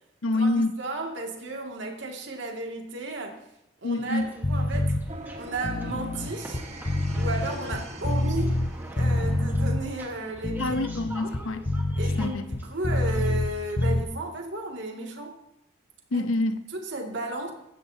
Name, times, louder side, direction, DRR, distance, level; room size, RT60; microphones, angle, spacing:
voice 1, 0.2-0.7 3.8-4.3 10.6-11.7 12.2-12.6 16.1-16.6, left 2 dB, 85° left, 10 dB, 0.8 m, -26 dB
voice 2, 0.8-3.4 3.8-4.9 5.4-6.6 7.1-8.6 9.0-10.7 11.2-11.4 12.0-15.4 16.1-16.3 16.7-17.5, right 2 dB, 65° right, 1 dB, 2.2 m, -34 dB
sound 1, 4.0-13.9, right 1 dB, 10° right, 1.3 m, -45 dB
sound 2, 4.4-5.0 5.5-8.7 9.0-9.8 10.3-13.5 13.8-14.0, left 1 dB, 30° left, 0.7 m, -26 dB
sound 3, 5.1-9.6, right 1 dB, 30° right, 1.3 m, -43 dB
15.5 x 12.5 x 2.8 m, 0.85 s
head